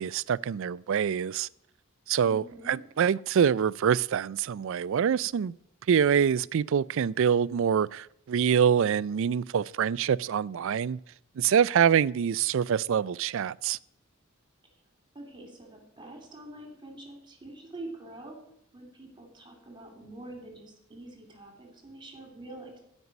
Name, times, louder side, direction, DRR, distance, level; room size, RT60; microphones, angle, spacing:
voice 1, 0.0-1.5 2.1-5.5 5.9-11.0 11.4-13.8, right 8 dB, 65° right, 0.4 m, -25 dB
voice 2, 2.3-2.8 15.1-18.4 18.7-22.8, right 2 dB, 20° right, 2.6 m, -45 dB
14.0 x 5.4 x 9.5 m
head